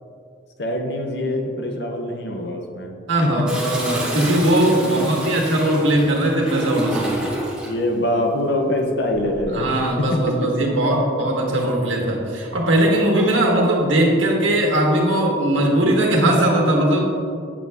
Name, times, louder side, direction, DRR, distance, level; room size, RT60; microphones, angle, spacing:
voice 1, 0.6-2.9 3.2-3.5 4.7-5.3 7.6-10.5 10.8-10.9 13.3-13.4, left 1 dB, 55° left, 3 dB, 0.8 m, -24 dB
voice 2, 3.1-7.2 9.5-17.0, right 1 dB, 75° right, -1 dB, 1.5 m, -19 dB
Toilet flush, 3.5-7.8 9.1-9.6, right 1 dB, 5° right, 1.3 m, -29 dB
8.4 x 6.8 x 3.5 m, 2.4 s
head